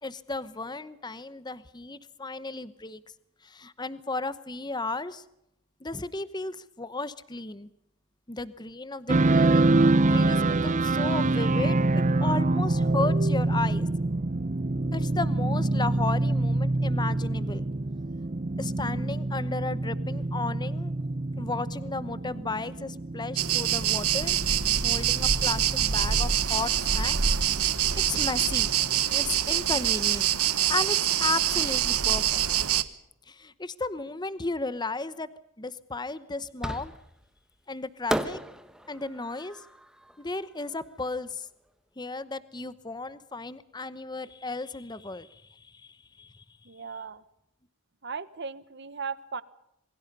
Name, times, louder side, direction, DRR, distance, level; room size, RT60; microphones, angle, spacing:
voice 1, 0.0-3.0 3.4-5.2 5.8-7.7 8.3-11.8 12.2-13.9 14.9-17.6 18.6-20.9 21.4-24.4 24.8-27.3 28.1-28.7 29.1-30.3 30.7-32.4 33.3-35.3 35.6-36.9 37.7-38.4 38.9-39.6 40.2-41.5 42.0-46.4, left 3 dB, 20° left, 15 dB, 0.9 m, -34 dB
sound 1, 9.1-29.0, right 2 dB, 35° right, 0.8 m, -26 dB
sound 2, 23.4-32.8, right 10 dB, 85° right, 1.3 m, -25 dB
Fireworks, 36.6-37.3 38.1-41.2, equal, 5° right, 1.3 m, -35 dB
voice 2, 46.6-47.2 48.0-49.4, right 5 dB, 50° right, 15 dB, 1.3 m, -37 dB
27.5 x 23.0 x 5.5 m, 0.81 s
head